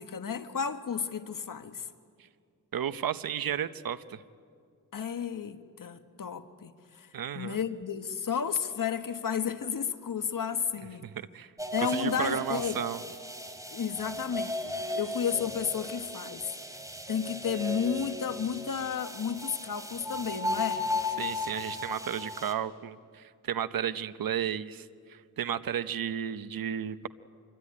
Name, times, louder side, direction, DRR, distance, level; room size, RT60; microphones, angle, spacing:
voice 1, 0.0-1.9 4.9-11.0 11.7-12.8 13.7-16.8 17.1-20.9, left 7 dB, 70° left, 1.4 m, -32 dB
voice 2, 2.7-4.2 7.1-7.6 11.0-11.5 11.9-13.0 21.2-27.1, right 9 dB, 80° right, 0.9 m, -33 dB
sound 1, 11.6-22.5, left 2 dB, 10° right, 2.8 m, -36 dB
25.5 x 23.5 x 9.7 m
wide cardioid pair, 80°, 34 cm